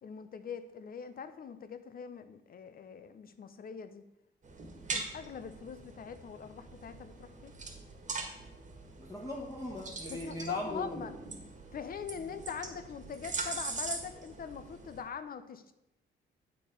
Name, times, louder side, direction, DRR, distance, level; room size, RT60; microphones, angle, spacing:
voice 1, 0.0-4.1 4.9-7.5 10.1-11.1 11.7-15.7, left 7 dB, 45° left, 11 dB, 0.7 m, -42 dB
sound 1, 4.4-15.0, right 3 dB, 40° right, 1.6 m, -42 dB
voice 2, 9.0-10.9, left 1 dB, 20° left, -5 dB, 1.6 m, -39 dB
8.3 x 4.6 x 5.3 m, 0.90 s
cardioid pair, 90°, 20 cm